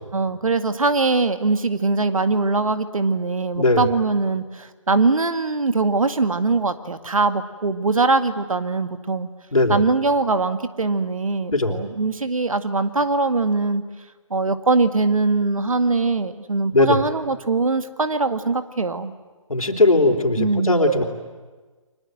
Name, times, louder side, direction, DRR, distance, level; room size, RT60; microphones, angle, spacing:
voice 1, 0.1-9.3 9.7-13.8 14.3-19.1 20.4-20.8, right 3 dB, 75° right, 10 dB, 1.9 m, -22 dB
voice 2, 3.5-3.9 9.5-9.8 11.5-11.8 16.7-17.0 19.5-21.0, left 2 dB, 85° left, 3 dB, 3.9 m, -18 dB
30.0 x 24.5 x 7.9 m, 1.3 s
figure-of-eight pair, 145°, 18 cm